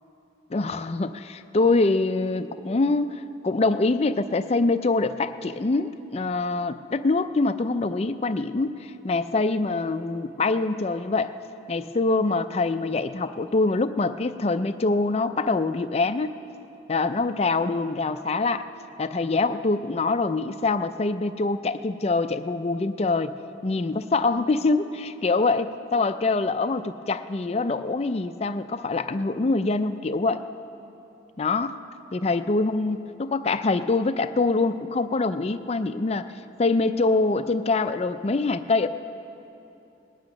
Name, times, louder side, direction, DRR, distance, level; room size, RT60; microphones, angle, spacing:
voice 1, 0.5-11.3 11.7-16.3 16.9-18.6 19.0-23.3 23.6-30.4 31.4-31.7 32.1-36.3 36.6-38.9, left 3 dB, 35° left, 11 dB, 0.4 m, -24 dB
19.5 x 9.7 x 6.1 m, 2.9 s
head